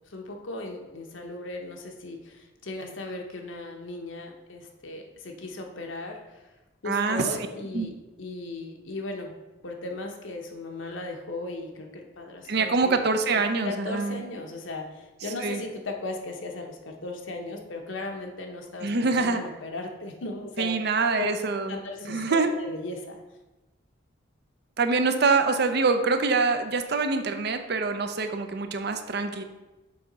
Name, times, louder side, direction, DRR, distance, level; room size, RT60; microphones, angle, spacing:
voice 1, 0.1-6.6 6.8-9.4 9.6-12.9 13.6-20.8 21.2-21.3 21.7-23.2, left 2 dB, 75° left, 2 dB, 1.0 m, -37 dB
voice 2, 6.9-7.2 7.7-7.9 12.5-14.2 15.4-15.6 18.8-19.4 20.6-21.7 22.0-22.5 24.8-29.4, right 4 dB, 55° right, 8 dB, 0.6 m, -25 dB
6.8 x 3.7 x 5.2 m, 1.1 s
head